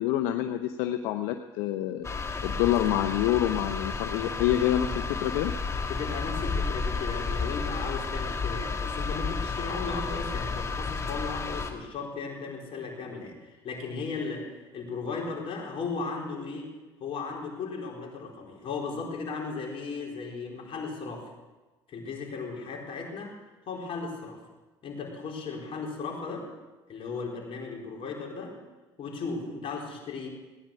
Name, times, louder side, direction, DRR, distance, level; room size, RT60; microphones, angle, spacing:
voice 1, 0.0-2.1 2.4-5.5, left 12 dB, 80° left, 8 dB, 0.7 m, -27 dB
sound 1, 2.0-11.7, left 4 dB, 25° left, 2.0 m, -32 dB
voice 2, 5.8-16.7 17.0-21.3 21.9-23.4 23.7-24.4 24.8-26.5 26.9-28.6 29.0-30.3, left 4 dB, 55° left, 0 dB, 4.4 m, -36 dB
17.5 x 10.5 x 6.7 m, 1.2 s
supercardioid pair, 75°, 11 cm